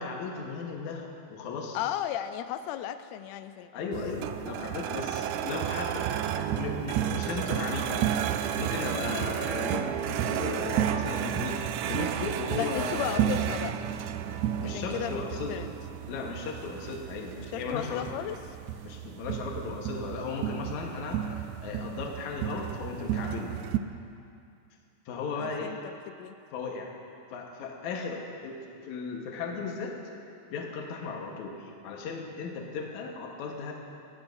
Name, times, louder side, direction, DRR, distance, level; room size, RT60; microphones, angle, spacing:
voice 1, 0.0-2.0 3.7-6.1 6.3-13.4 14.6-15.7 16.1-18.1 18.8-23.6 25.1-25.7 26.5-26.9 27.3-30.0 30.5-33.7, left 4 dB, 70° left, 0 dB, 2.5 m, -36 dB
voice 2, 1.7-3.9 12.6-13.7 14.6-15.2 15.5-15.7 17.5-18.4 25.4-25.8 26.1-26.3, left 12 dB, 85° left, 10 dB, 1.5 m, -34 dB
sound 1, 3.9-23.8, right 10 dB, 80° right, 1.7 m, -32 dB
20.0 x 16.5 x 2.7 m, 2.5 s
omnidirectional pair, 3.8 m